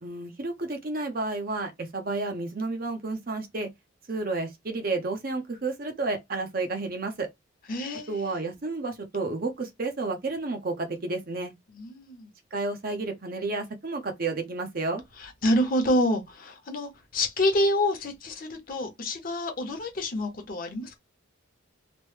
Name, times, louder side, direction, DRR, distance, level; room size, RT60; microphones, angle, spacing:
voice 1, 0.0-3.7 4.1-7.3 8.1-11.5 12.5-15.0, right 3 dB, 45° right, 0.7 m, -31 dB
voice 2, 7.7-8.3 11.8-12.3 15.2-21.0, left 1 dB, 45° left, 0.8 m, -27 dB
3.0 x 2.1 x 3.2 m
head